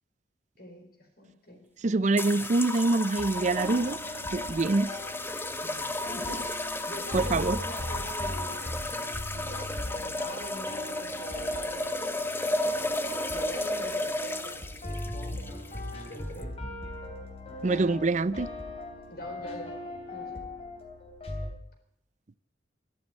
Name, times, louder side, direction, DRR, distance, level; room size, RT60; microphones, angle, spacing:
voice 1, 0.6-1.6 5.6-5.9 6.1-16.5 19.1-19.7 20.1-20.4, left 1 dB, 55° left, 4.4 m, -44 dB
voice 2, 1.8-4.0 4.3-4.9 7.1-7.6 17.6-18.5, right 3 dB, 40° right, 0.5 m, -25 dB
sound 1, 2.2-16.4, left 1 dB, 10° left, 1.0 m, -33 dB
sound 2, 3.2-21.5, left 1 dB, 35° left, 3.2 m, -40 dB
12.5 x 12.5 x 8.3 m
head